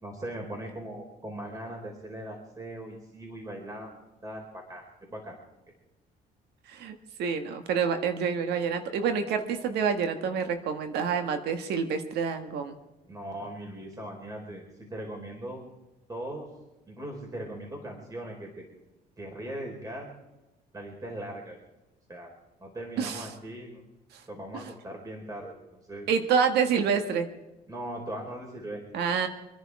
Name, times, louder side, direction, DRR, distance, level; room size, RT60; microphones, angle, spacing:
voice 1, 0.0-4.0 4.2-4.8 5.1-5.4 13.1-15.6 16.1-16.5 16.9-18.6 19.2-20.1 20.7-21.6 22.1-23.8 24.3-26.1 27.7-28.8, right 1 dB, 20° right, 1 dB, 4.5 m, -39 dB
voice 2, 6.7-12.8 23.0-23.2 26.1-27.3 28.9-29.3, right 6 dB, 75° right, 7 dB, 1.6 m, -27 dB
26.0 x 10.5 x 4.8 m, 1.0 s
cardioid pair, 110°, 17 cm